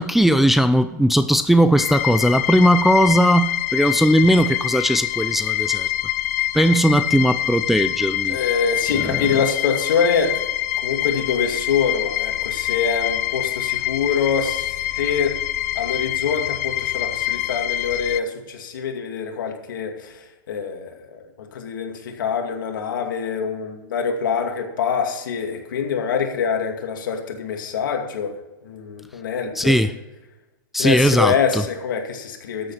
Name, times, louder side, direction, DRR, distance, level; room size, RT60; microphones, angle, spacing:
voice 1, 0.0-5.9 6.5-8.4 9.0-9.3 29.6-30.0 30.7-31.6, equal, ahead, 0.3 m, -18 dB
sound 1, 1.8-18.2, left 14 dB, 50° left, 0.6 m, -25 dB
voice 2, 8.3-10.5 10.8-15.4 15.7-28.3 28.6-29.8 30.8-32.7, left 6 dB, 75° left, 2.4 m, -25 dB
13.0 x 8.0 x 5.7 m
hypercardioid pair, 145°, 11 cm